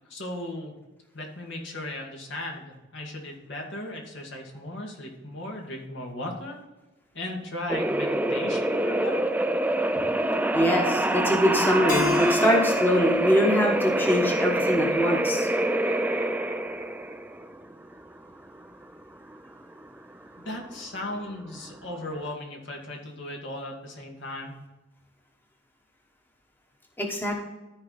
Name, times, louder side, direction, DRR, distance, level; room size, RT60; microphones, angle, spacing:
voice 1, 0.1-0.7 1.1-6.6 7.1-9.2 20.4-24.5, left 1 dB, 75° left, 0 dB, 2.3 m, -36 dB
sound 1, 7.7-22.3, right 1 dB, 10° right, 0.4 m, -26 dB
voice 2, 10.5-15.5 27.0-27.3, equal, 10° left, 0 dB, 1.2 m, -23 dB
Keyboard (musical), 11.9-15.1, left 3 dB, 50° left, 1.5 m, -32 dB
13.5 x 4.8 x 4.2 m, 1.1 s
head